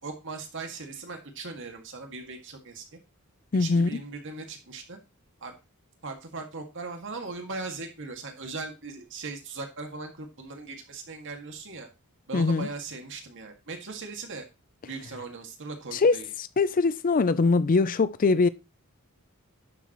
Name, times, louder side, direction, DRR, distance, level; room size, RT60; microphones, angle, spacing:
voice 1, 0.0-3.0 3.6-5.0 5.4-5.6 6.0-11.9 12.3-14.4 14.8-16.3, right 3 dB, 60° right, 2.0 m, -39 dB
voice 2, 3.5-3.9 12.3-12.7 15.9-16.1 16.6-18.5, left 4 dB, 40° left, 0.4 m, -22 dB
11.5 x 7.2 x 3.0 m
head